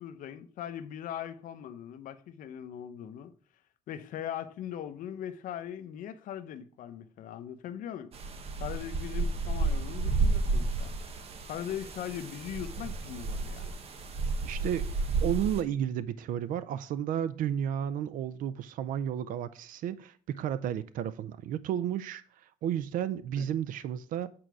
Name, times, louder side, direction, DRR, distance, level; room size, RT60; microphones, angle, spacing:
voice 1, 0.0-3.3 3.9-8.1 8.6-10.9 11.5-13.7 23.4-23.5, left 10 dB, 80° left, 0.8 m, -40 dB
sound 1, 8.1-15.6, right 3 dB, 45° right, 1.1 m, -31 dB
voice 2, 14.4-24.3, right 10 dB, 90° right, 0.5 m, -32 dB
8.8 x 4.6 x 6.1 m
cardioid pair, 155°, 14 cm